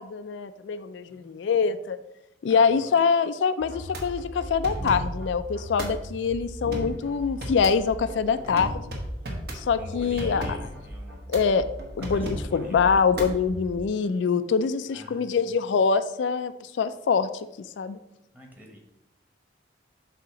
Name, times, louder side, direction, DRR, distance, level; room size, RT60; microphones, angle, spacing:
voice 1, 0.0-2.0 2.4-8.9 9.5-10.5 11.3-11.7 12.0-17.3 17.8-18.0, left 5 dB, 80° left, 11 dB, 0.4 m, -24 dB
voice 2, 2.5-2.9 9.8-11.3 12.0-12.9 14.9-15.4 18.3-18.8, equal, 10° right, 1 dB, 1.1 m, -46 dB
sound 1, 3.6-13.8, equal, 60° right, 1.2 m, -35 dB
7.5 x 2.9 x 5.8 m, 0.87 s
head